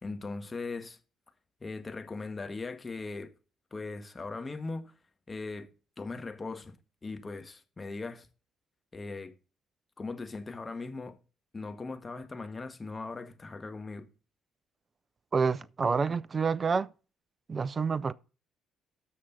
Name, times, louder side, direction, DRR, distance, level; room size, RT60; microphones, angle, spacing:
voice 1, 0.0-1.0 1.6-3.3 3.7-4.9 5.3-5.7 6.0-6.8 7.0-8.3 8.9-9.3 10.0-11.2 11.5-14.1, left 3 dB, 25° left, 1.6 m, -39 dB
voice 2, 15.3-16.9 17.5-18.1, right 5 dB, 35° right, 0.5 m, -28 dB
12.5 x 6.5 x 3.9 m
hypercardioid pair, 50°, 0 cm